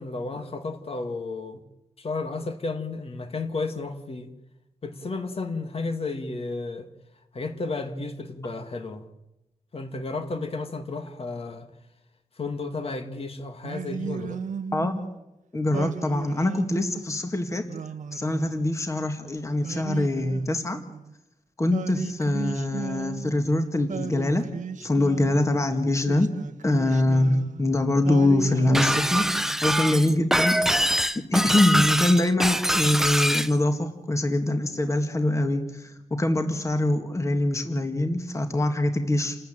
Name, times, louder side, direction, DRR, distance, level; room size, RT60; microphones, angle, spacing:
voice 1, 0.0-1.6 2.0-4.3 4.8-6.9 7.3-9.1 9.7-11.7 12.4-14.4, left 3 dB, 50° left, 2.3 m, -32 dB
Singing, 13.6-15.1 15.7-17.1 17.7-19.0 19.6-21.1 21.7-23.5 23.9-25.5 26.0-27.7 28.0-29.7, right 6 dB, 80° right, 1.1 m, -36 dB
voice 2, 15.5-17.7 18.1-20.8 21.6-24.5 24.8-26.3 26.6-30.6 31.3-39.4, left 1 dB, 25° left, 1.9 m, -24 dB
Shatter, 28.7-33.5, equal, 5° right, 0.8 m, -24 dB
29.0 x 13.5 x 9.1 m
wide cardioid pair, 120°, 13 cm